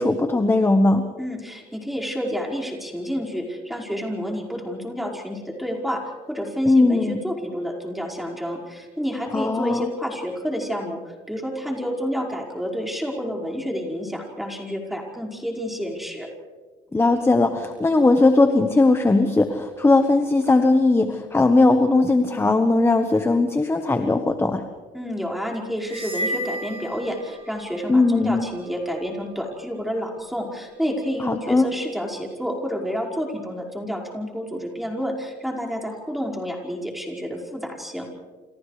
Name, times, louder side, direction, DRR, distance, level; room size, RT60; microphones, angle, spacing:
voice 1, 0.0-1.0 6.7-7.2 9.3-9.9 16.9-24.6 27.9-28.5 31.3-31.7, left 2 dB, 15° left, 7 dB, 1.2 m, -19 dB
voice 2, 1.2-6.0 6.3-16.3 24.9-38.1, equal, ahead, -2 dB, 5.3 m, -29 dB
sound 1, 25.9-27.7, equal, 35° right, 2.1 m, -32 dB
29.0 x 29.0 x 3.4 m, 1.4 s
cardioid pair, 110°, 17 cm